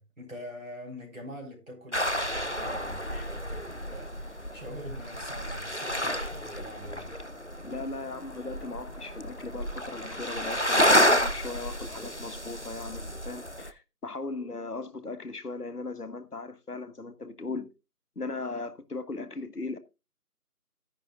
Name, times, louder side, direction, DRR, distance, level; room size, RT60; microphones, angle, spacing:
voice 1, 0.0-7.1, equal, 55° right, 4.3 m, -44 dB
sound 1, 1.9-13.7, equal, 50° left, 0.5 m, -30 dB
voice 2, 7.6-17.7 18.2-19.8, left 3 dB, 75° left, 1.3 m, -38 dB
13.5 x 10.0 x 2.3 m
figure-of-eight pair, 175°, 47 cm